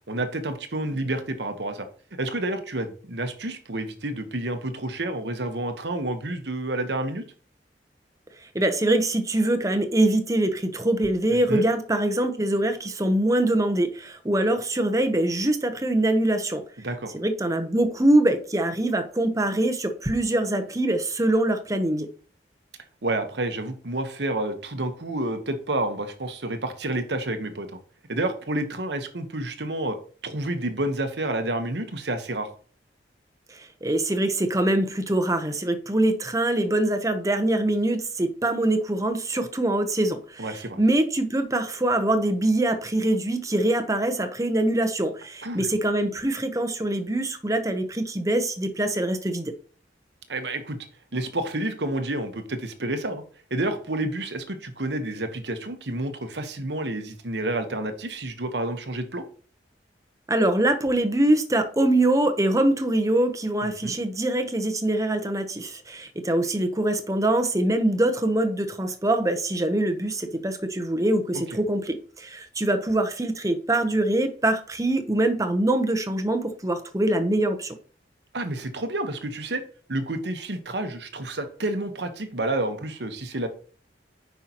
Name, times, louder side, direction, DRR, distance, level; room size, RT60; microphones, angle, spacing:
voice 1, 0.1-7.2 11.3-11.6 16.8-17.1 23.0-27.7 28.1-30.0 30.2-32.5 40.4-40.8 45.4-45.7 50.3-50.8 51.1-53.2 53.5-59.2 63.8-63.9 78.3-79.6 79.9-83.5, right 1 dB, 70° right, 1.2 m, -29 dB
voice 2, 8.5-16.6 17.1-22.1 33.5-49.5 60.3-77.7, right 1 dB, 20° right, 0.9 m, -24 dB
9.4 x 5.6 x 3.0 m
head